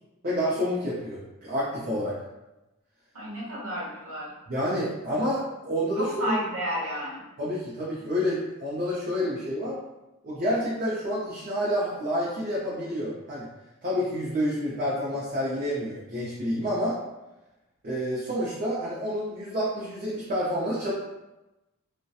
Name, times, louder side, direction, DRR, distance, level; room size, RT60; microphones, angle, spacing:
voice 1, 0.2-2.1 4.5-6.4 7.4-9.8 10.2-13.5 13.8-17.0 17.8-20.9, equal, 45° right, -8 dB, 0.5 m, -28 dB
voice 2, 3.1-4.3 6.0-7.2, equal, 75° right, -6 dB, 1.0 m, -32 dB
2.6 x 2.1 x 2.3 m, 1.0 s
head